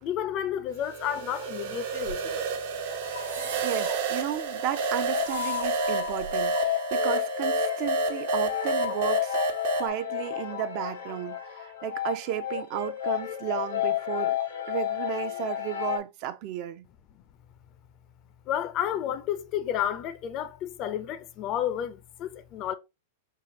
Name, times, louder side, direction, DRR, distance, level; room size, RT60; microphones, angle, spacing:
voice 1, 0.0-2.5 18.5-22.7, left 10 dB, 40° left, 0.5 m, -31 dB
sound 1, 0.8-9.9, right 2 dB, 65° right, 0.8 m, -29 dB
sound 2, 1.3-6.5, right 5 dB, 90° right, 1.0 m, -43 dB
sound 3, 2.9-4.5 4.8-16.0, left 12 dB, 80° left, 0.9 m, -32 dB
voice 2, 3.6-9.4 9.7-14.4 14.7-16.8, right 12 dB, 50° right, 0.5 m, -34 dB
4.7 x 2.4 x 2.8 m
hypercardioid pair, 120°, 0 cm